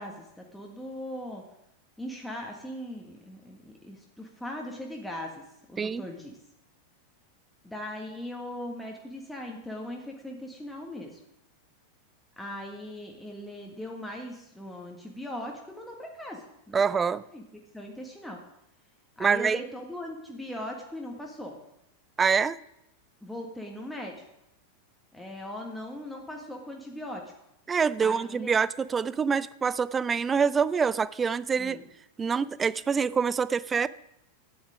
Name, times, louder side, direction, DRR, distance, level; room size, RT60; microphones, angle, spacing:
voice 1, 0.0-1.4 2.0-5.3 5.7-6.4 7.6-11.2 12.4-16.9 17.3-17.4 17.7-18.4 19.2-21.6 23.2-24.2 25.1-27.2 28.0-28.5 31.6-31.8, left 1 dB, 5° left, 0 dB, 1.7 m, -39 dB
voice 2, 16.7-17.2 19.2-19.6 22.2-22.6 27.7-31.8 32.2-33.9, right 6 dB, 20° right, 18 dB, 0.4 m, -25 dB
12.5 x 10.0 x 5.0 m, 0.84 s
figure-of-eight pair, 90°, 0 cm